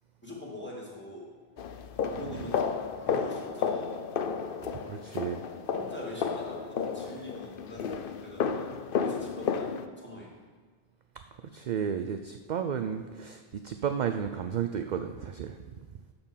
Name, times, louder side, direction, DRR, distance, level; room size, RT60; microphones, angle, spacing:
voice 1, 0.2-1.3 2.0-2.6 3.0-4.0 5.7-10.3 15.7-15.8, left 1 dB, 10° left, -4 dB, 2.5 m, -44 dB
sound 1, 1.6-9.9, left 6 dB, 65° left, 0.8 m, -32 dB
voice 2, 4.8-5.4 11.5-15.6, right 8 dB, 55° right, 7 dB, 0.5 m, -33 dB
12.5 x 4.3 x 7.3 m, 1.5 s
omnidirectional pair, 1.1 m